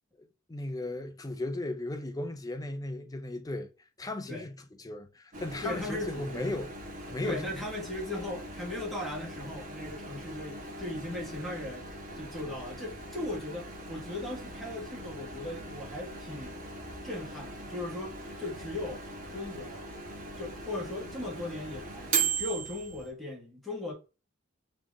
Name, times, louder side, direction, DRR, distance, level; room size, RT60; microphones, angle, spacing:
voice 1, 0.5-3.7 4.0-6.7 7.1-7.4, left 1 dB, 15° left, 0.5 m, -36 dB
Microwave oven, 5.3-23.1, right 4 dB, 40° right, 1.1 m, -39 dB
voice 2, 5.6-6.5 7.2-11.9 12.1-16.6 17.0-19.0 19.3-19.9 20.4-23.9, left 2 dB, ahead, 1.6 m, -38 dB
4.4 x 2.9 x 3.5 m
head